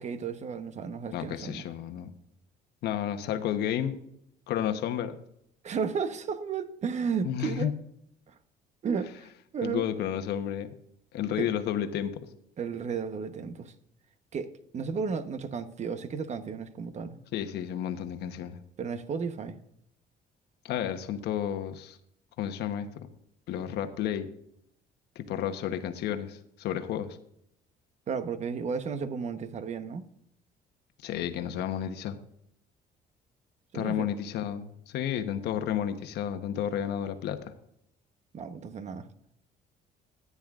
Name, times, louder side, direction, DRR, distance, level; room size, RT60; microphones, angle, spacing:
voice 1, 0.0-1.6 5.6-7.7 8.3-8.4 8.8-9.2 9.5-9.8 11.4-11.5 12.6-13.7 14.3-17.2 18.8-19.6 28.1-30.1 33.7-34.1 38.3-39.1, right 6 dB, 40° right, 1.0 m, -33 dB
voice 2, 1.1-2.1 2.8-4.0 4.5-5.1 7.2-7.7 9.6-10.7 11.1-12.3 17.3-18.6 20.6-22.0 22.4-23.1 23.5-24.3 25.1-27.2 31.0-32.2 33.7-37.5, left 10 dB, 75° left, 1.1 m, -31 dB
14.0 x 9.7 x 2.5 m
cardioid pair, 110°, 17 cm